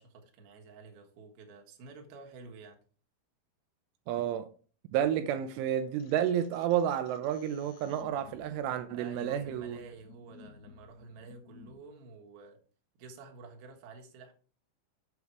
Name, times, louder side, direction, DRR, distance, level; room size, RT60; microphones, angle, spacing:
voice 1, 0.0-2.8 8.9-12.6 13.0-14.3, right 4 dB, 60° right, 2.9 m, -50 dB
voice 2, 4.1-4.5 4.9-9.8, right 10 dB, 80° right, 2.9 m, -30 dB
sound 1, 6.0-11.8, left 7 dB, 75° left, 2.7 m, -56 dB
8.2 x 7.0 x 4.7 m
omnidirectional pair, 5.9 m